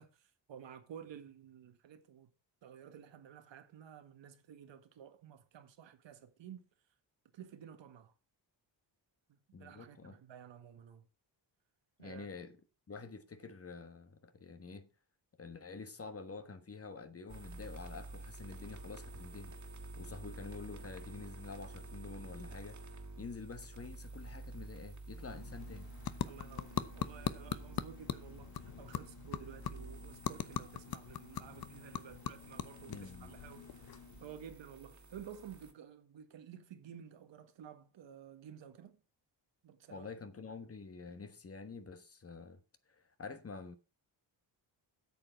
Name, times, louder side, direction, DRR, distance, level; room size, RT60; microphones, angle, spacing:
voice 1, 0.0-2.3 2.6-6.7 7.3-8.1 9.3-11.1 12.0-12.3 26.2-39.0 39.6-40.1, right 8 dB, 70° right, 1.6 m, -53 dB
voice 2, 9.5-10.2 12.0-12.6 12.9-14.9 15.4-22.8 23.2-25.9 32.9-33.4 39.9-42.6 42.9-43.8, left 4 dB, 30° left, 1.3 m, -48 dB
sound 1, 17.3-35.7, right 2 dB, 40° right, 2.2 m, -50 dB
sound 2, 25.1-34.5, left 9 dB, 50° left, 0.9 m, -42 dB
8.6 x 6.9 x 6.0 m
cardioid pair, 85°, 45 cm